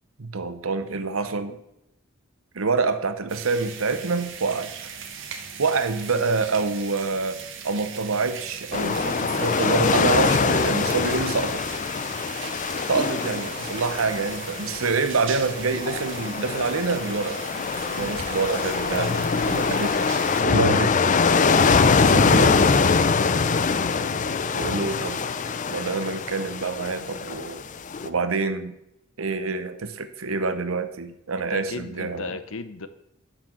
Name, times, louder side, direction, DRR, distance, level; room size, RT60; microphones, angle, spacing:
voice 1, 0.2-1.6 2.5-4.7 5.6-7.4 7.6-11.6 12.9-17.4 17.9-20.0 20.4-20.9 22.0-22.6 24.5-25.2 25.7-27.6 28.0-28.7 29.2-32.4, right 4 dB, 90° right, 11 dB, 0.9 m, -26 dB
sound 1, 3.3-20.4, right 6 dB, 65° right, 1.2 m, -39 dB
sound 2, 8.7-28.1, left 5 dB, 40° left, 0.5 m, -23 dB
voice 2, 23.1-23.5 31.5-32.9, left 4 dB, 75° left, 12 dB, 0.8 m, -35 dB
7.1 x 5.9 x 7.5 m, 0.82 s
head